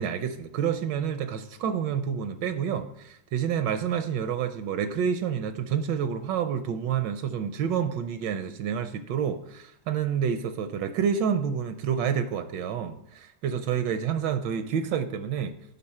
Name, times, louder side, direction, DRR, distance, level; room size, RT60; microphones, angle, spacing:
voice 1, 0.0-15.5, right 7 dB, 80° right, 10 dB, 1.2 m, -28 dB
11.5 x 4.1 x 4.2 m, 0.80 s
omnidirectional pair, 2.0 m